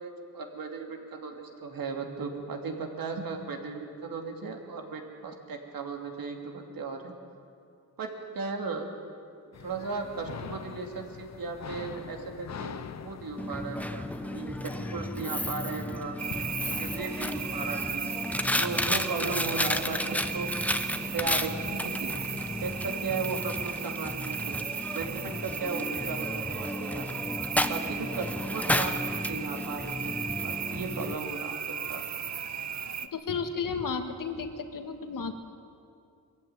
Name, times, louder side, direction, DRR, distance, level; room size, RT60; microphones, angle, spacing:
voice 1, 0.0-7.1 8.0-8.1 8.3-8.8 9.6-16.1 16.6-18.1 18.5-20.5 21.1-22.1 22.6-24.6 24.9-27.0 27.7-30.1 30.4-31.6 31.9-32.0, right 4 dB, 75° right, 3 dB, 2.7 m, -36 dB
sound 1, 9.5-23.2, left 7 dB, 50° left, 0.8 m, -45 dB
Coin (dropping), 13.4-31.1, left 1 dB, 5° left, 0.8 m, -33 dB
sound 2, 16.2-33.1, right 7 dB, 50° right, 0.8 m, -36 dB
voice 2, 33.0-35.3, left 5 dB, 65° left, 7 dB, 1.8 m, -33 dB
22.5 x 14.5 x 9.3 m, 2.5 s
wide cardioid pair, 115°, 35 cm